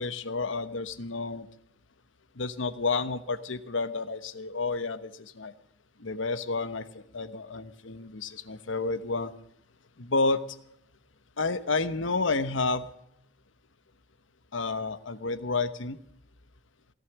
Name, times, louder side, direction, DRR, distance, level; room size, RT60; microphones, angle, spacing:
voice 1, 0.0-1.5 2.4-5.5 6.0-9.3 10.0-10.4 11.4-12.9 14.5-16.0, left 3 dB, 85° left, 13 dB, 1.1 m, -30 dB
17.5 x 11.0 x 6.1 m, 0.74 s
head